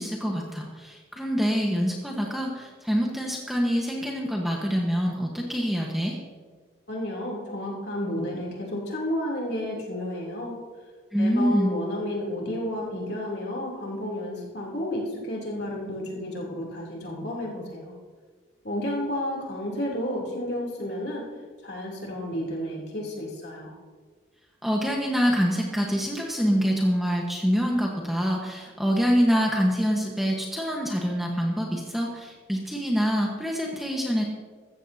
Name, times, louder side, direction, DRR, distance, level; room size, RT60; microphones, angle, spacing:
voice 1, 0.0-6.2 11.1-11.7 24.6-34.2, equal, ahead, -1 dB, 1.2 m, -25 dB
voice 2, 6.9-10.6 11.2-17.9 18.6-21.2 21.6-23.7, left 1 dB, 55° left, -2 dB, 3.1 m, -31 dB
15.0 x 14.5 x 2.8 m, 1.5 s
head